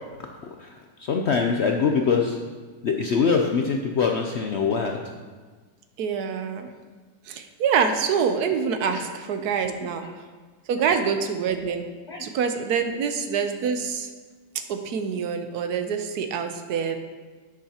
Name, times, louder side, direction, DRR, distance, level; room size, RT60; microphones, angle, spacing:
voice 1, 0.2-2.4 2.8-5.0 8.9-9.1 9.6-9.7 10.0-10.2 10.8-10.9 12.1-12.3, left 5 dB, 70° left, 2 dB, 0.6 m, -24 dB
voice 2, 6.0-6.7 7.3-10.0 10.7-11.9 12.2-14.1 14.7-17.0, right 6 dB, 75° right, 7 dB, 1.2 m, -26 dB
10.5 x 8.6 x 2.9 m, 1.4 s
omnidirectional pair, 1.8 m